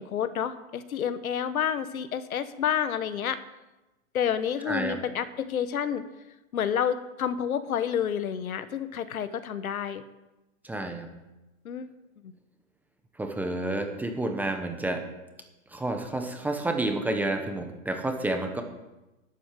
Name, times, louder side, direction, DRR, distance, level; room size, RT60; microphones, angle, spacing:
voice 1, 0.0-3.4 4.1-6.0 6.5-10.0 11.6-11.9 12.2-12.3, left 8 dB, 80° left, 12 dB, 1.4 m, -29 dB
voice 2, 4.7-5.0 10.6-11.1 13.2-15.0 15.7-18.6, right 2 dB, 5° right, 5 dB, 1.0 m, -30 dB
12.0 x 9.6 x 7.5 m, 1.0 s
hypercardioid pair, 150°, 42 cm